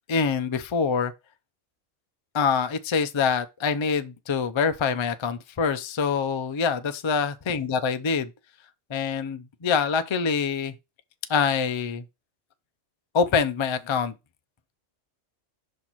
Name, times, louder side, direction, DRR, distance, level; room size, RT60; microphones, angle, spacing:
voice 1, 0.1-1.1 2.3-8.3 8.9-10.7 11.3-12.0 13.1-14.1, left 6 dB, 35° left, 0.4 m, -25 dB
5.8 x 4.3 x 4.5 m
omnidirectional pair, 1.3 m